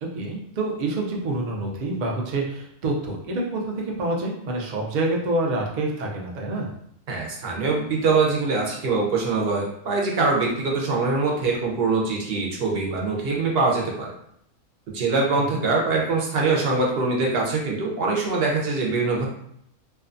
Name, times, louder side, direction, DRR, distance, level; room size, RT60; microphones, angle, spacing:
voice 1, 0.0-3.6 4.0-6.7 15.3-15.6, right 2 dB, 90° right, -1 dB, 0.4 m, -27 dB
voice 2, 7.1-14.1 14.9-19.3, right 3 dB, 60° right, -1 dB, 0.7 m, -23 dB
2.6 x 2.2 x 2.5 m, 0.72 s
omnidirectional pair, 1.4 m